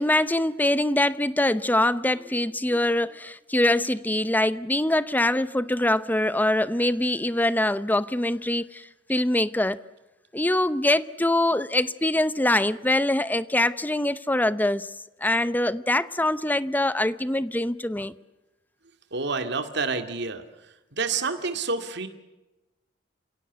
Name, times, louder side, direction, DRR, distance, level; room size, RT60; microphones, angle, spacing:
voice 1, 0.0-8.8 9.1-9.8 10.3-14.9 15.2-18.1, left 1 dB, 10° left, 0.8 m, -24 dB
voice 2, 19.1-20.4 20.9-22.1, right 4 dB, 65° right, 2.2 m, -28 dB
29.0 x 17.0 x 8.1 m
head